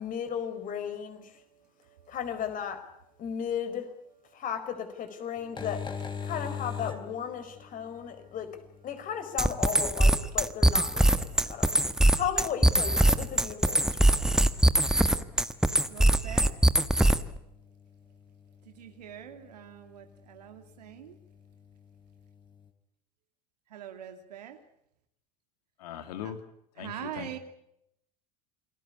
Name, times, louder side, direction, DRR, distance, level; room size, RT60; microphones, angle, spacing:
voice 1, 0.0-1.2 2.1-2.8 3.2-3.8 4.3-5.8 6.2-8.5 8.8-11.8 12.1-14.2, left 8 dB, 40° left, 5.2 m, -35 dB
voice 2, 1.9-2.2 7.4-7.5 7.8-8.3 11.5-11.6 15.9-16.5 18.7-21.2 23.7-24.6 26.2-26.3 26.8-27.4, right 10 dB, 85° right, 2.6 m, -44 dB
sound 1, 5.4-22.7, left 6 dB, 25° left, 4.0 m, -46 dB
sound 2, 9.4-17.4, right 1 dB, 5° right, 1.4 m, -22 dB
voice 3, 25.8-26.4 26.8-27.4, left 9 dB, 75° left, 3.2 m, -39 dB
28.5 x 20.0 x 8.5 m
hypercardioid pair, 90°, 20 cm